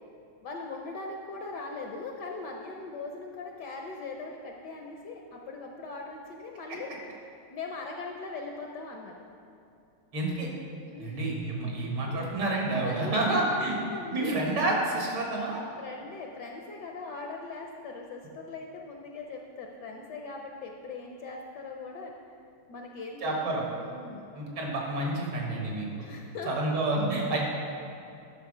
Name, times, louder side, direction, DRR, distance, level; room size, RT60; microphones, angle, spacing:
voice 1, 0.4-6.9 7.5-9.2 10.8-11.3 12.1-12.3 12.7-14.3 15.5-22.1 22.7-24.3 26.0-26.5, left 3 dB, 65° left, 1 dB, 1.1 m, -40 dB
voice 2, 10.1-10.5 11.0-13.8 14.1-15.6 23.2-23.6 24.3-25.9 26.5-27.4, right 2 dB, 70° right, -2 dB, 2.5 m, -29 dB
11.0 x 5.9 x 4.8 m, 2.6 s
omnidirectional pair, 2.4 m